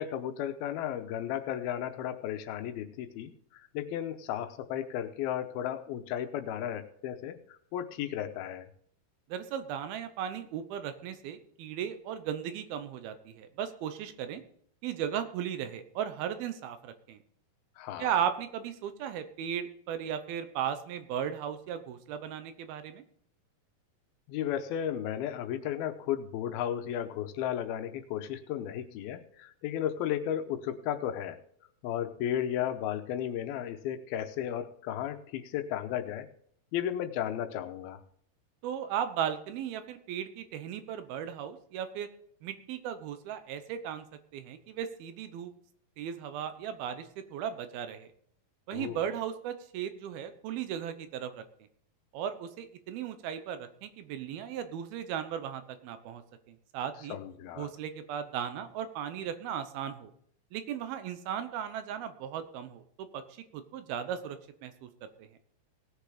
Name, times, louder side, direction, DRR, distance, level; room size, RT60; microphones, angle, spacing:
voice 1, 0.0-8.7 17.8-18.1 24.3-31.4 31.8-36.3 36.7-38.0 48.7-49.0 57.1-57.7, left 10 dB, 85° left, 8 dB, 2.7 m, -34 dB
voice 2, 9.3-14.4 14.8-17.2 18.0-23.0 38.6-42.1 42.4-44.1 44.3-45.5 46.0-48.1 48.7-51.4 52.1-56.2 56.5-57.2 57.6-60.1 60.5-64.9 65.2-65.3, right 9 dB, 80° right, 10 dB, 2.8 m, -36 dB
18.0 x 6.6 x 4.9 m, 0.63 s
omnidirectional pair, 4.4 m